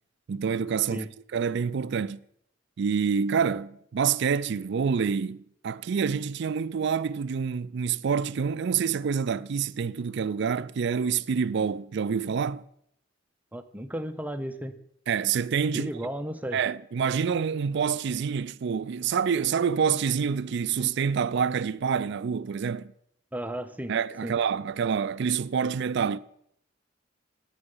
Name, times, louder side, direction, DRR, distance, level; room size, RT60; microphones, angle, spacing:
voice 1, 0.3-2.2 2.8-12.6 15.1-15.9 16.5-22.9 23.9-26.2, right 6 dB, 60° right, 0.4 m, -27 dB
voice 2, 13.5-14.8 15.7-16.6 23.3-23.9 24.2-24.3, right 1 dB, 10° right, 0.6 m, -34 dB
9.9 x 9.1 x 5.4 m
head